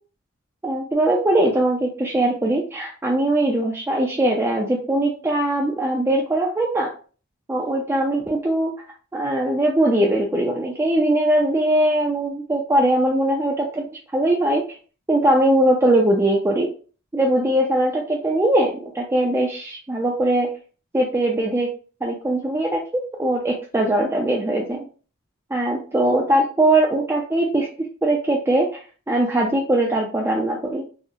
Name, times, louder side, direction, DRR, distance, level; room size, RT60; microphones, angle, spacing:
voice 1, 0.6-6.9 7.5-8.7 9.1-14.6 15.1-16.7 17.1-20.5 20.9-21.7 22.0-24.9 25.5-27.7 28.0-28.8 29.1-30.8, right 1 dB, 10° right, -2 dB, 0.3 m, -21 dB
3.6 x 2.0 x 2.6 m, 0.38 s
head